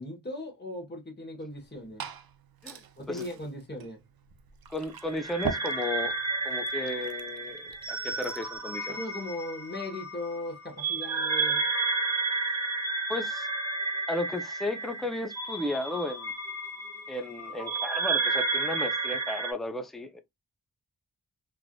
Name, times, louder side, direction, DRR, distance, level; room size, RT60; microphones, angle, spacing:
voice 1, 0.0-2.0 3.0-4.0 8.9-11.7, left 1 dB, 25° left, 1.1 m, -38 dB
Glass / Fill (with liquid), 1.5-8.6, right 7 dB, 60° right, 0.5 m, -42 dB
voice 2, 4.7-6.2 6.4-9.0 13.1-13.5 14.1-16.3 17.1-20.2, left 1 dB, ahead, 0.5 m, -34 dB
sound 1, 5.1-19.5, right 3 dB, 40° right, 1.2 m, -32 dB
3.2 x 2.4 x 2.2 m
wide cardioid pair, 50°, 42 cm